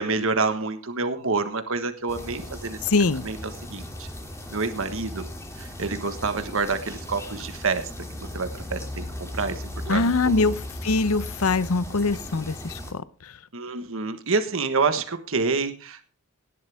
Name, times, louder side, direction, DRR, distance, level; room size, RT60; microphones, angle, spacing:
voice 1, 0.0-2.8 3.2-4.1 4.5-5.3 5.6-7.9 8.2-10.5 13.5-16.1, right 4 dB, 65° right, 9 dB, 1.5 m, -28 dB
sound 1, 2.1-12.9, left 1 dB, 15° left, 2.9 m, -37 dB
voice 2, 2.8-3.3 9.9-13.4, left 3 dB, 85° left, 16 dB, 0.8 m, -23 dB
18.0 x 12.0 x 3.6 m, 0.33 s
head